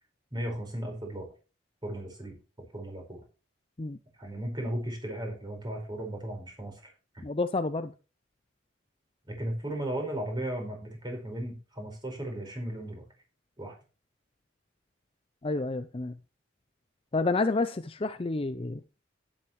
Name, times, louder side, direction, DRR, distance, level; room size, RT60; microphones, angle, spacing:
voice 1, 0.3-1.3 1.8-2.4 2.7-3.2 4.2-7.2 9.3-13.0 13.6-13.7, right 1 dB, 20° right, 4.8 m, -36 dB
voice 2, 7.2-7.9 15.4-16.1 17.1-19.0, left 3 dB, 30° left, 0.5 m, -29 dB
12.0 x 9.9 x 3.1 m
head